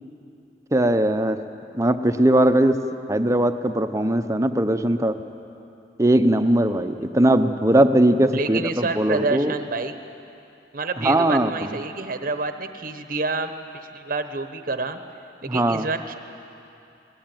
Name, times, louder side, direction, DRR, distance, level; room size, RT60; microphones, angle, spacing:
voice 1, 0.7-1.4 1.7-2.8 3.1-5.1 6.0-9.5 11.0-11.7 15.5-15.9, right 1 dB, 20° right, 8 dB, 0.9 m, -20 dB
voice 2, 8.3-9.9 10.7-13.5 13.9-15.0 15.4-16.2, right 3 dB, 55° right, 8 dB, 1.0 m, -28 dB
21.5 x 19.5 x 9.1 m, 2.7 s
head